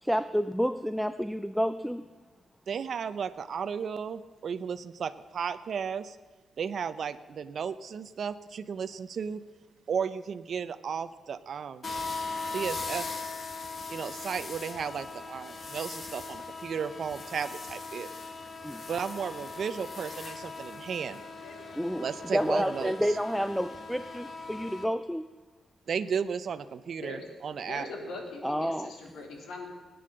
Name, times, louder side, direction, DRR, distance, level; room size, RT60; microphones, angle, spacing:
voice 1, 0.0-2.0 18.6-18.8 21.8-22.1 22.3-25.3 28.4-28.9, equal, ahead, 13 dB, 0.3 m, -29 dB
voice 2, 2.7-6.2 6.6-9.4 9.9-11.9 12.5-13.1 13.9-18.1 18.9-21.2 22.0-22.9 25.9-27.9, right 7 dB, 45° right, 11 dB, 0.6 m, -34 dB
sound 1, 11.8-24.8, left 3 dB, 30° left, 1.1 m, -39 dB
voice 3, 27.5-29.7, left 3 dB, 75° left, 1 dB, 3.5 m, -41 dB
17.5 x 9.4 x 7.7 m, 1.5 s
wide cardioid pair, 180°, 0 cm